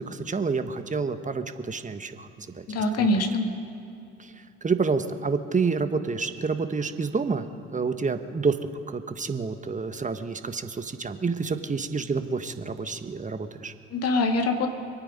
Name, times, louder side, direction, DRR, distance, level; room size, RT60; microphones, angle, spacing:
voice 1, 0.0-2.7 3.0-3.1 4.2-4.3 4.6-7.5 7.7-8.6 8.9-13.7, right 4 dB, 25° right, 9 dB, 1.3 m, -28 dB
voice 2, 2.7-3.5 13.9-14.7, left 2 dB, 55° left, 4 dB, 2.3 m, -24 dB
26.0 x 9.0 x 5.3 m, 2.6 s
hypercardioid pair, 55°, 29 cm